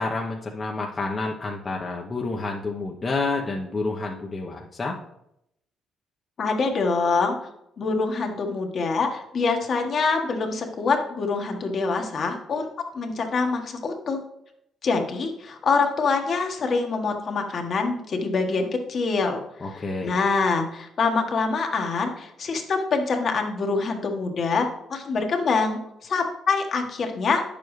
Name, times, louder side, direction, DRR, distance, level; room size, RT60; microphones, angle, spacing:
voice 1, 0.0-5.0 19.6-20.2, left 3 dB, 35° left, 0 dB, 0.9 m, -29 dB
voice 2, 6.4-7.4 7.8-14.2 14.8-19.4 19.7-27.4, left 4 dB, 50° left, 3 dB, 1.4 m, -25 dB
9.6 x 6.9 x 3.2 m, 0.79 s
cardioid pair, 85°, 0 cm